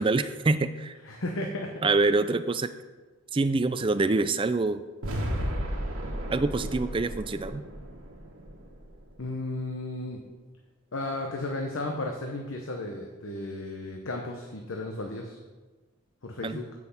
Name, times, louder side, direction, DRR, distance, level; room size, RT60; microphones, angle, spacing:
voice 1, 0.0-0.9 1.8-2.7 3.3-4.8 6.3-7.6 16.4-16.6, right 3 dB, 25° right, 11 dB, 0.4 m, -25 dB
voice 2, 1.0-1.8 9.2-10.2 10.9-15.4 16.2-16.7, left 2 dB, 70° left, 2 dB, 0.9 m, -34 dB
sound 1, 5.0-9.2, equal, 90° right, 1.3 m, -34 dB
7.9 x 6.1 x 7.0 m, 1.3 s
head